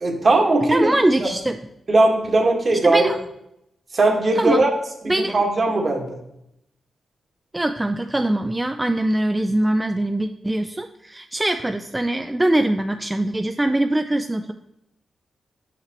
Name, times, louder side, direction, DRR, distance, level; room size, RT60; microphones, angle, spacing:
voice 1, 0.0-0.9 1.2-1.3 1.9-3.1 3.9-4.7 5.0-6.2, right 2 dB, 50° right, 1 dB, 1.6 m, -19 dB
voice 2, 0.7-1.6 2.7-3.2 4.4-4.6 5.1-5.4 7.5-14.5, right 1 dB, 20° right, 7 dB, 0.4 m, -22 dB
5.8 x 5.7 x 3.0 m, 0.81 s
supercardioid pair, 40°, 0 cm